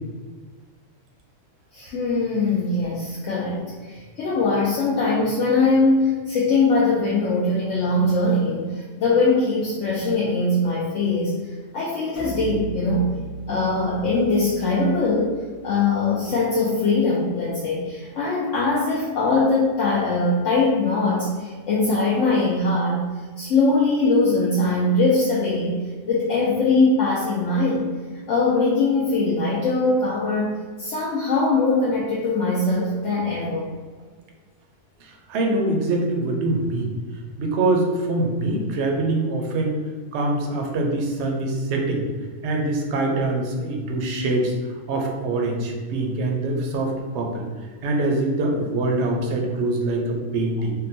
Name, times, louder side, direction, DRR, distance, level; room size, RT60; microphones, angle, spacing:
voice 1, 1.7-11.3 11.7-13.1 13.5-15.4 15.6-23.0 23.4-25.8 26.1-27.9 28.3-33.7, left 3 dB, 65° left, -6 dB, 0.9 m, -21 dB
sound 1, 12.1-17.8, right 3 dB, 30° left, 1.0 m, -39 dB
voice 2, 35.0-36.9 37.4-39.8 40.1-42.1 42.4-44.5 44.9-47.5 47.8-50.7, right 2 dB, 65° right, 1 dB, 0.8 m, -24 dB
3.7 x 2.2 x 2.6 m, 1.5 s
omnidirectional pair, 1.5 m